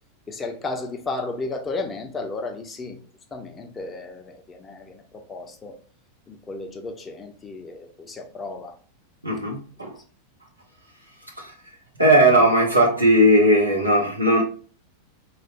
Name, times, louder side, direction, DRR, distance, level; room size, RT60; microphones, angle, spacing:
voice 1, 0.3-3.0 3.3-5.8 6.3-8.7, left 3 dB, 20° left, 0.7 m, -33 dB
voice 2, 9.2-10.0 11.4-11.5 12.0-14.4, right 1 dB, 85° right, 1.0 m, -17 dB
4.4 x 2.5 x 2.5 m
figure-of-eight pair, 90°, 0 cm